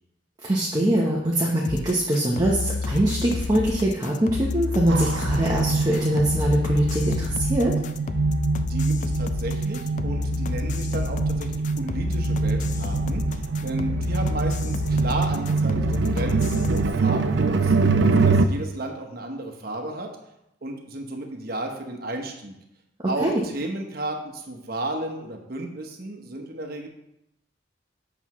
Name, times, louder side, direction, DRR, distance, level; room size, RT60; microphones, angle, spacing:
voice 1, 0.4-7.7 23.2-23.4, right 1 dB, 20° right, -3 dB, 0.8 m, -23 dB
sound 1, 1.6-16.9, left 3 dB, 40° left, 0.3 m, -29 dB
sound 2, 4.9-18.5, right 4 dB, 70° right, 0.5 m, -25 dB
voice 2, 8.6-20.1 20.6-22.5 23.1-26.9, right 1 dB, 55° right, 3 dB, 1.0 m, -33 dB
7.9 x 6.0 x 3.0 m, 0.84 s
head